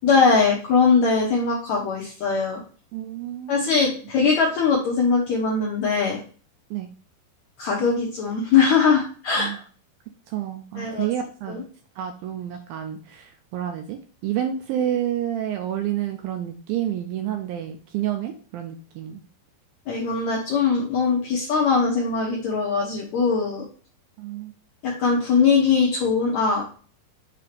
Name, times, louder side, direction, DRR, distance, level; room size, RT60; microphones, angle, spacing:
voice 1, 0.0-2.6 3.5-6.2 7.6-9.5 10.8-11.1 11.5-11.6 19.9-23.6 24.8-26.6, left 5 dB, 70° left, -3 dB, 1.7 m, -21 dB
voice 2, 2.9-4.0 6.7-6.9 9.4-9.6 10.3-11.6 12.0-19.2 24.2-24.5, right 11 dB, 80° right, 5 dB, 2.1 m, -29 dB
6.8 x 2.8 x 4.9 m, 0.40 s
omnidirectional pair, 4.6 m